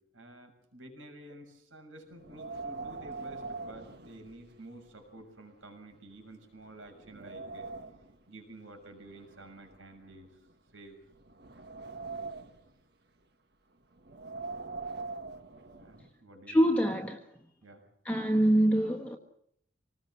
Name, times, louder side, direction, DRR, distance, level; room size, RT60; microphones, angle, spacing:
voice 1, 0.1-7.7 8.3-10.3 10.7-11.0 15.8-17.0 17.6-17.8, right 1 dB, 85° right, 6.5 m, -50 dB
Wind, 2.2-4.8 5.2-5.3 5.9-6.0 6.5-8.1 9.0-10.5 11.1-12.7 14.0-16.1, right 3 dB, 55° right, 1.7 m, -43 dB
voice 2, 16.5-17.2 18.0-19.2, right 1 dB, 5° left, 1.5 m, -25 dB
26.0 x 19.5 x 7.7 m
head